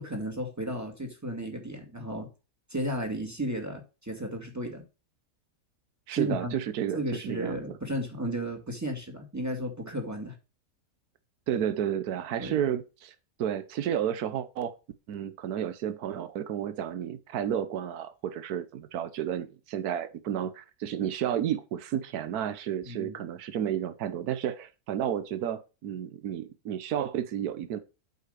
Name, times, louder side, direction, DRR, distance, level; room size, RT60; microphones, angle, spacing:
voice 1, 0.0-2.3 2.7-4.8 6.1-6.5 6.9-10.3 12.4-12.6 22.8-23.2, right 1 dB, 10° right, 2.2 m, -34 dB
voice 2, 6.1-7.6 11.5-14.7 15.1-27.8, right 10 dB, 80° right, 1.4 m, -32 dB
8.2 x 5.2 x 6.7 m
omnidirectional pair, 1.6 m